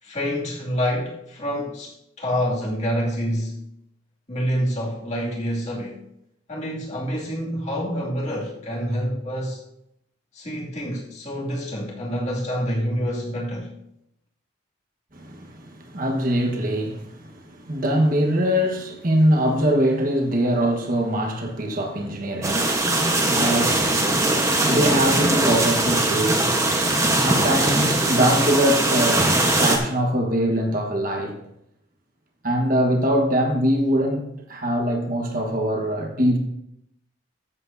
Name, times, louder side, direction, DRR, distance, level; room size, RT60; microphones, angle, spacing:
voice 1, 0.0-3.6 4.3-6.0 6.5-9.6 10.3-13.7, equal, 35° left, 2.5 m, -27 dB
voice 2, 15.1-26.6 27.1-31.3 32.4-36.4, equal, 45° right, 1.3 m, -23 dB
sound 1, 22.4-29.8, right 2 dB, 15° right, 1.1 m, -21 dB
14.0 x 8.0 x 2.7 m
head